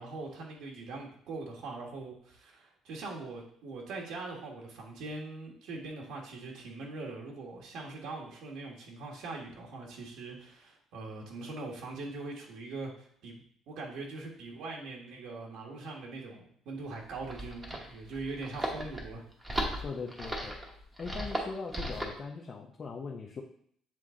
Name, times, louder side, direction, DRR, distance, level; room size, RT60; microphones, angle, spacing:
voice 1, 0.0-19.2, right 3 dB, 70° right, -1 dB, 1.5 m, -42 dB
sound 1, 17.0-22.2, right 1 dB, 10° right, 1.0 m, -36 dB
voice 2, 19.8-20.6 21.0-23.4, left 4 dB, 30° left, 0 dB, 0.6 m, -40 dB
7.6 x 3.9 x 3.7 m, 0.64 s
cardioid pair, 160°, 0 cm